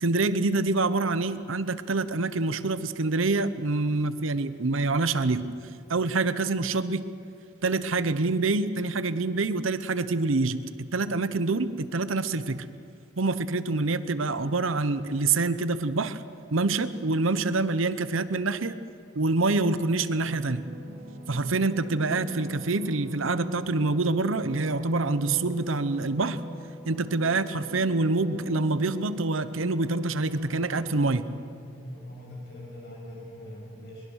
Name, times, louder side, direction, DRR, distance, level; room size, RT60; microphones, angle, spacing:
voice 1, 0.0-5.5 5.9-7.1 7.6-12.7 13.2-16.2 16.5-18.8 19.2-20.7 21.3-26.4 26.9-31.3, right 3 dB, 80° right, 13 dB, 0.9 m, -26 dB
sound 1, 19.1-31.2, equal, 45° right, 2.6 m, -40 dB
voice 2, 31.3-34.0, left 1 dB, 55° left, -2 dB, 7.4 m, -42 dB
22.5 x 22.0 x 6.4 m, 2.5 s
head